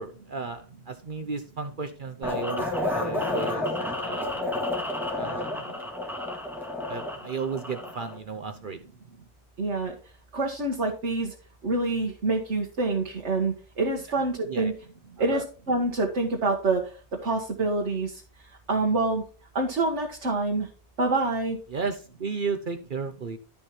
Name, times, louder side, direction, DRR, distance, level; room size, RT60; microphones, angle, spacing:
voice 1, 0.0-3.7 3.9-4.3 5.2-5.5 6.9-8.8 14.5-14.7 15.2-15.4 21.7-23.4, right 5 dB, 50° right, 7 dB, 1.0 m, -34 dB
sound 1, 2.2-8.2, left 2 dB, ahead, 2.0 m, -30 dB
voice 2, 9.6-10.0 10.3-11.4 11.6-14.7 15.2-19.2 19.5-20.7 21.0-21.6, right 2 dB, 85° right, 1 dB, 1.7 m, -27 dB
11.5 x 5.4 x 4.4 m, 0.35 s
omnidirectional pair, 1.2 m